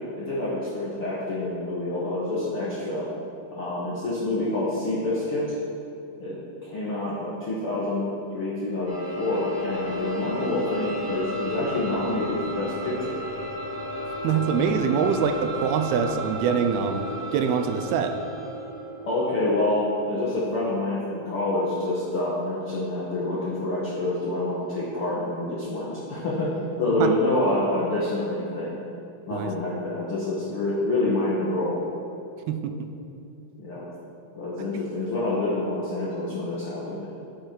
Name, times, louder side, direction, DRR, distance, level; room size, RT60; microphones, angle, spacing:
voice 1, 0.2-3.1 3.5-5.6 6.2-6.4 6.6-8.1 8.3-13.2 19.1-26.5 26.8-28.8 29.3-31.8 33.6-33.8 34.3-37.1, left 2 dB, 65° left, -8 dB, 1.3 m, -27 dB
sound 1, 8.9-24.5, equal, 30° left, 2.6 m, -35 dB
voice 2, 14.2-18.1 27.0-27.1 29.3-29.5 32.5-32.9, right 6 dB, 80° right, 6 dB, 2.4 m, -24 dB
10.0 x 6.6 x 4.5 m, 2.7 s
omnidirectional pair, 4.5 m